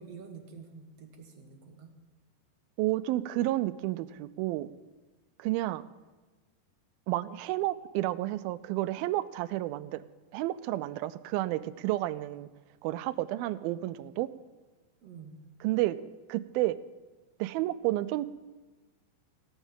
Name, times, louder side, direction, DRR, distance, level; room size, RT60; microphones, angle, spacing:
voice 1, 0.0-1.9 15.0-15.4, right 5 dB, 60° right, 3 dB, 1.8 m, -48 dB
voice 2, 2.8-4.7 5.4-5.8 7.1-10.0 10.3-12.5 12.8-14.3 15.6-16.8 17.4-18.3, right 16 dB, 85° right, 15 dB, 2.4 m, -31 dB
17.5 x 7.2 x 7.3 m, 1.2 s
omnidirectional pair, 4.3 m